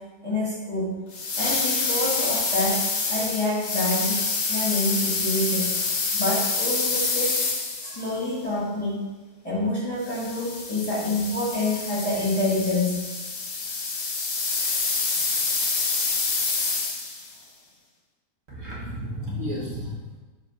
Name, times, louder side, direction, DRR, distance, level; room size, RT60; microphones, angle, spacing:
voice 1, 0.2-1.0 1.4-4.2 4.5-5.7 6.1-7.4 7.8-9.1 9.4-13.1, left 2 dB, 20° left, -7 dB, 1.8 m, -27 dB
sound 1, 1.1-8.1 10.0-17.3, left 4 dB, 50° left, 1.1 m, -27 dB
voice 2, 18.5-20.2, equal, 50° right, -5 dB, 1.3 m, -32 dB
4.8 x 3.9 x 5.8 m, 1.2 s
omnidirectional pair, 1.8 m